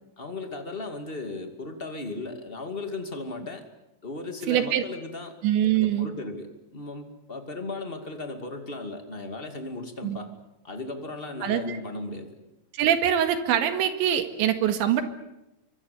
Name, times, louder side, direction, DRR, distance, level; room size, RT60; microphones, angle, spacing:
voice 1, 0.2-3.6 4.0-5.3 5.7-10.3 10.6-12.4, left 2 dB, 25° left, 6 dB, 1.3 m, -36 dB
voice 2, 4.5-4.8 5.4-6.1 10.0-10.2 11.4-11.8 12.7-15.0, right 10 dB, 80° right, 8 dB, 4.1 m, -23 dB
25.0 x 24.5 x 8.5 m, 0.89 s
omnidirectional pair, 5.2 m